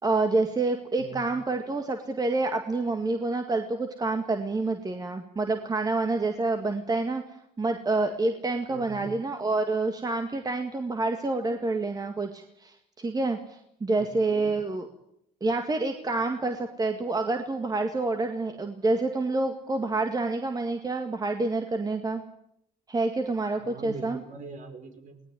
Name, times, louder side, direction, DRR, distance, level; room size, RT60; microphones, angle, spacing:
voice 1, 0.0-7.2 7.6-14.9 15.4-22.2 22.9-24.2, right 3 dB, 20° right, 5 dB, 1.9 m, -28 dB
voice 2, 1.0-1.3 8.7-9.2 14.0-14.6 23.6-25.2, right 4 dB, 50° right, 6 dB, 5.3 m, -42 dB
19.5 x 19.0 x 9.2 m, 0.75 s
cardioid pair, 110°, 17 cm